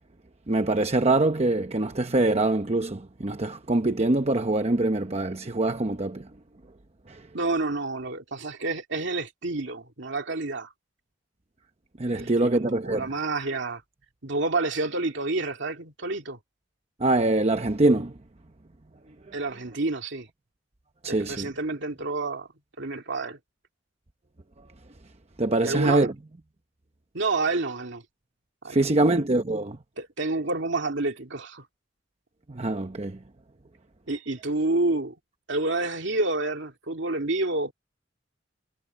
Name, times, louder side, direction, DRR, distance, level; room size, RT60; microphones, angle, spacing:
voice 1, 0.5-6.2 12.0-13.0 17.0-18.1 21.0-21.5 25.4-26.1 28.7-29.8 32.5-33.2, right 2 dB, 35° right, 0.9 m, -24 dB
voice 2, 7.3-10.7 12.1-13.8 14.2-16.4 19.3-20.3 21.0-22.5 22.8-23.4 25.6-26.1 27.1-28.0 28.6-29.1 30.0-31.6 34.1-35.1 35.5-37.7, right 2 dB, 65° right, 2.6 m, -29 dB
head